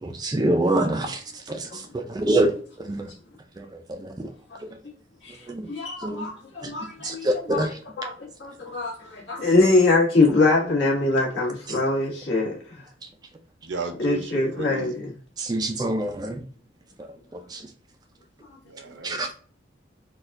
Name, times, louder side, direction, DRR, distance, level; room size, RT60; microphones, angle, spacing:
voice 1, 0.0-2.5 2.8-3.1 3.6-4.3 4.6-4.7 5.5-5.7 6.0-6.3 6.6-6.7 7.0-7.8 11.7-11.8 15.4-16.4 17.0-17.7 19.0-19.3, right 1 dB, 20° right, 0.3 m, -26 dB
voice 2, 5.7-7.6 8.0-12.6 14.0-15.1 18.9-19.3, left 2 dB, 70° left, 1.5 m, -23 dB
voice 3, 13.6-14.9 18.7-19.3, right 3 dB, 75° right, 0.7 m, -34 dB
4.0 x 2.3 x 2.5 m
head